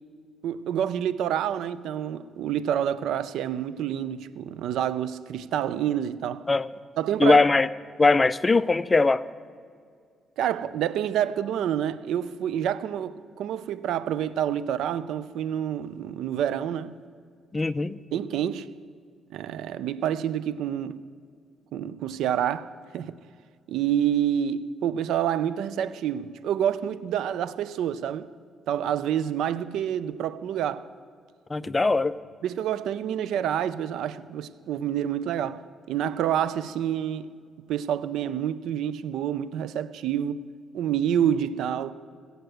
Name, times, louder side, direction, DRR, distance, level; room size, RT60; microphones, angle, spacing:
voice 1, 0.4-6.5 7.0-7.5 10.4-16.9 18.1-18.7 19.3-21.0 21.7-23.2 23.7-28.3 28.7-30.9 31.6-31.7 32.4-37.3 37.7-40.4 40.7-41.9, right 10 dB, 80° right, 0.4 m, -28 dB
voice 2, 7.2-7.7 8.0-9.2 17.5-18.0 31.5-32.2, left 3 dB, 25° left, 0.4 m, -20 dB
17.0 x 7.9 x 7.9 m
cardioid pair, 90°, 0 cm